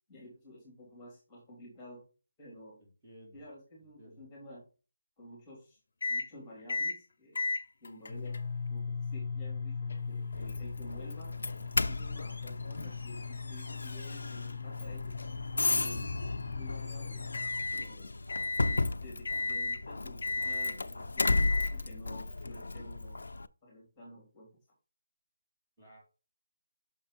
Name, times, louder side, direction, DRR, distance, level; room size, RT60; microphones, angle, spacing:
voice 1, 0.1-2.0 2.4-2.8 3.3-4.6 5.2-5.8 6.1-7.5 7.8-8.4 8.7-11.4 11.8-15.1 15.5-16.1 16.5-17.2 17.7-18.2 18.5-21.4 21.7-23.2 23.6-24.5, left 1 dB, 10° left, -2 dB, 3.0 m, -51 dB
voice 2, 2.8-3.4 4.0-4.2 25.8-26.0, equal, 10° right, -9 dB, 2.6 m, -55 dB
sound 1, 6.0-6.3 6.7-7.0 7.4-17.9 18.3-18.9 19.3-19.8 20.2-20.8 21.2-21.7, left 4 dB, 45° left, 1.0 m, -36 dB
Doorbell, 10.3-23.5, left 3 dB, 85° left, 0.6 m, -35 dB
6.2 x 5.4 x 5.3 m, 0.34 s
hypercardioid pair, 180°, 0 cm